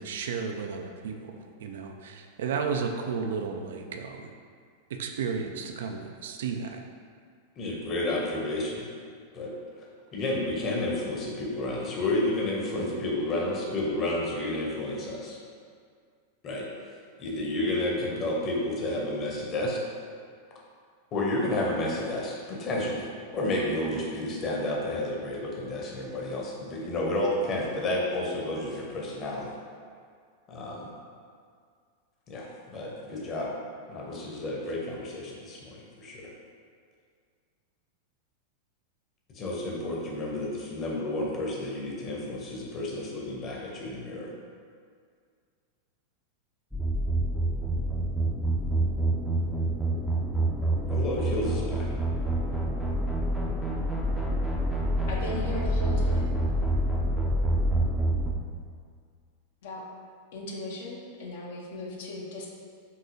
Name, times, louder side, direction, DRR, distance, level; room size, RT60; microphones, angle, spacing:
voice 1, 0.0-4.3 4.9-6.8, right 5 dB, 60° right, 4 dB, 0.3 m, -33 dB
voice 2, 7.6-8.8 9.3-9.5 9.8-9.9 10.1-15.4 16.4-16.6 17.2-19.8 21.1-23.1 23.3-29.5 30.5-30.9 32.3-33.5 33.9-36.3 39.3-44.3 50.9-51.9, left 1 dB, 30° left, -3 dB, 0.9 m, -31 dB
sound 1, 46.7-58.3, right 1 dB, ahead, 0.5 m, -27 dB
voice 3, 55.1-56.3 59.6-59.8 60.3-62.5, left 2 dB, 55° left, -1 dB, 0.6 m, -37 dB
5.5 x 2.7 x 2.6 m, 2.1 s
figure-of-eight pair, 90°, 0 cm